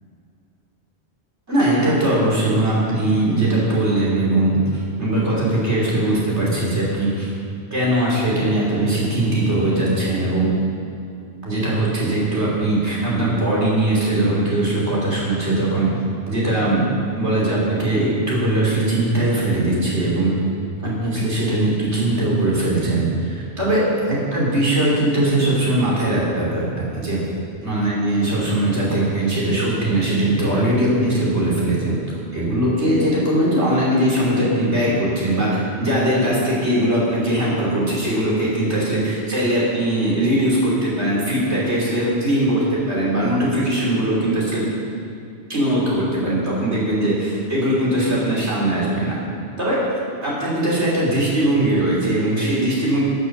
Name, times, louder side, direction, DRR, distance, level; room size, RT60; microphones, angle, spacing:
voice 1, 1.5-7.3 7.7-10.5 11.4-15.9 16.3-16.9 17.2-20.4 20.8-27.2 27.6-32.0 32.3-44.7 45.5-49.2 49.6-49.8 50.2-53.0, right 1 dB, 85° right, -6 dB, 3.8 m, -20 dB
12.5 x 7.0 x 6.6 m, 2.5 s
omnidirectional pair, 1.1 m